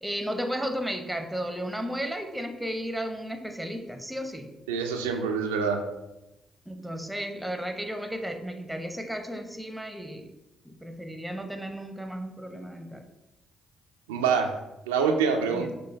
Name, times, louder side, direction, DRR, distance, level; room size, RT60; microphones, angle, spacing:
voice 1, 0.0-4.5 6.7-10.3 10.6-13.1 15.5-15.7, equal, 5° right, 6 dB, 0.7 m, -34 dB
voice 2, 4.7-5.8 14.1-14.6 14.9-15.7, right 5 dB, 85° right, 4 dB, 0.4 m, -25 dB
6.1 x 2.5 x 3.4 m, 0.94 s
hypercardioid pair, 50°, 0 cm